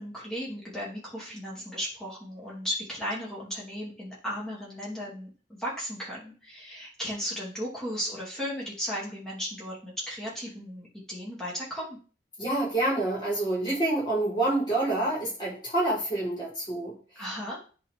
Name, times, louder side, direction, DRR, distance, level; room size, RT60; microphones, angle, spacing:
voice 1, 0.0-12.0 17.2-17.6, equal, 5° left, -7 dB, 2.9 m, -35 dB
voice 2, 12.4-17.2, right 2 dB, 25° left, -7 dB, 4.3 m, -27 dB
10.0 x 4.3 x 3.7 m, 0.37 s
head